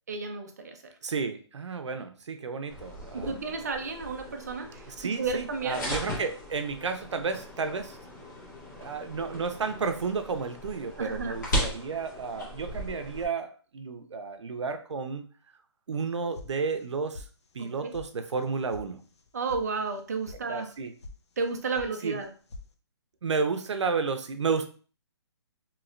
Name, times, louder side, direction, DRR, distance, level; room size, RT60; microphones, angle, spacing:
voice 1, 0.1-0.9 3.1-4.9 5.2-5.8 10.9-11.4 17.6-17.9 19.3-20.7 21.4-22.3, right 4 dB, 35° right, 5 dB, 0.5 m, -32 dB
voice 2, 1.0-3.5 4.9-8.0 8.7-15.2 15.9-17.3 17.5-19.0 20.5-20.9 22.0-22.2 23.2-24.7, right 4 dB, 85° right, 8 dB, 0.6 m, -32 dB
sound 1, 2.7-13.2, equal, 40° left, 1.2 m, -37 dB
sound 2, 16.3-16.9 17.1-17.7 17.9-18.0 18.4-18.8 19.1-19.6 19.9-20.4 20.7-21.2 21.4-21.9 22.2-22.7, left 2 dB, 70° left, 0.6 m, -44 dB
3.1 x 2.8 x 2.5 m, 0.40 s
hypercardioid pair, 175°, 15 cm